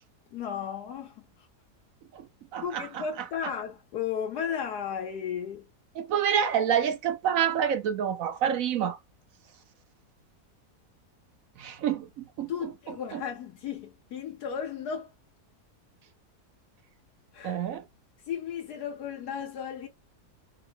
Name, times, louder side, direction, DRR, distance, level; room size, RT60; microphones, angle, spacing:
voice 1, 0.3-1.3 2.6-5.6 12.5-15.1 17.3-17.6 18.3-19.9, left 7 dB, 80° left, 1.4 m, -34 dB
voice 2, 2.5-3.0 6.0-9.0 11.6-12.7 13.1-13.2 17.4-17.8, right 8 dB, 65° right, 1.0 m, -28 dB
4.6 x 2.0 x 2.7 m
omnidirectional pair, 1.7 m